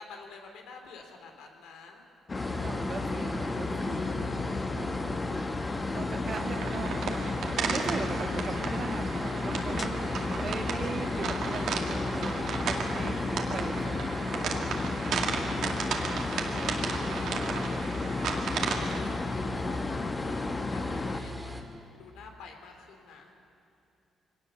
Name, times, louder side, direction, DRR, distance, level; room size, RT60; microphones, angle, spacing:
voice 1, 0.0-2.0 17.2-17.9 18.3-21.7 22.0-23.3, left 4 dB, 90° left, 3 dB, 3.1 m, -48 dB
sound 1, 2.3-21.2, left 3 dB, 30° left, 1.1 m, -33 dB
sound 2, 2.3-21.6, left 1 dB, 5° right, 2.4 m, -39 dB
voice 2, 2.6-4.4 4.7-5.2 5.9-7.1 7.6-14.7 15.5-15.8, right 5 dB, 45° right, 7 dB, 1.4 m, -40 dB
sound 3, 6.3-19.0, right 6 dB, 75° right, 2.1 m, -35 dB
23.0 x 18.5 x 6.9 m, 2.8 s
cardioid pair, 90°, 0 cm